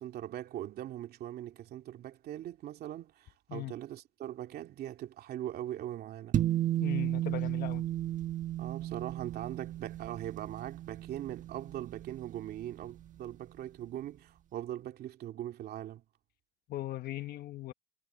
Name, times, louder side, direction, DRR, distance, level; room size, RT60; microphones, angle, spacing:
voice 1, 0.0-6.4 8.6-16.0, right 12 dB, 70° right, 2.5 m, -41 dB
sound 1, 6.3-12.9, right 12 dB, 50° right, 1.6 m, -34 dB
voice 2, 6.8-7.8 16.7-17.7, left 16 dB, 65° left, 1.5 m, -38 dB
cardioid pair, 110°, 17 cm